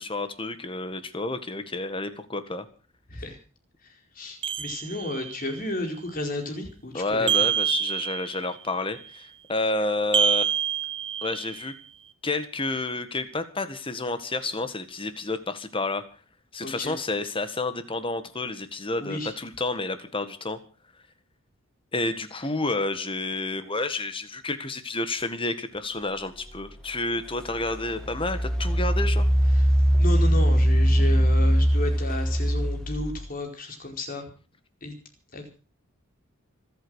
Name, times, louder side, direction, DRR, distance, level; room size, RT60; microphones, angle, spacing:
voice 1, 0.0-2.7 6.9-10.5 11.2-11.7 12.2-16.0 16.5-20.6 21.9-29.3, left 2 dB, 25° left, 11 dB, 1.7 m, -30 dB
voice 2, 3.8-7.5 16.6-16.9 19.0-19.3 29.5-29.7 30.0-34.2 34.8-34.9 35.3-35.5, left 1 dB, 40° left, 3 dB, 4.6 m, -33 dB
Aud Ancient chime, 4.4-5.4 7.3-8.5 10.1-11.6, right 9 dB, 25° right, 1.0 m, -26 dB
Engine, 26.6-26.7 27.4-33.3, equal, 5° left, 1.6 m, -22 dB
25.5 x 8.6 x 6.4 m, 0.37 s
head